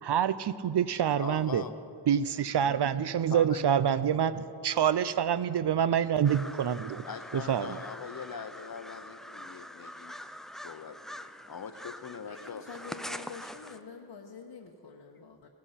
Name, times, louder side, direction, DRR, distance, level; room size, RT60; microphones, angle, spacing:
voice 1, 0.0-1.6 2.1-7.0 7.3-7.8, right 8 dB, 65° right, 15 dB, 0.6 m, -27 dB
voice 2, 1.2-1.7 3.3-3.6 7.0-10.1 10.6-11.2 11.5-12.7, left 7 dB, 50° left, 10 dB, 0.9 m, -42 dB
sound 1, 6.2-13.8, equal, ahead, 0.3 m, -44 dB
voice 3, 12.3-15.5, left 5 dB, 70° left, -1 dB, 1.1 m, -47 dB
17.5 x 13.5 x 5.8 m, 2.6 s
wide cardioid pair, 115°, 45 cm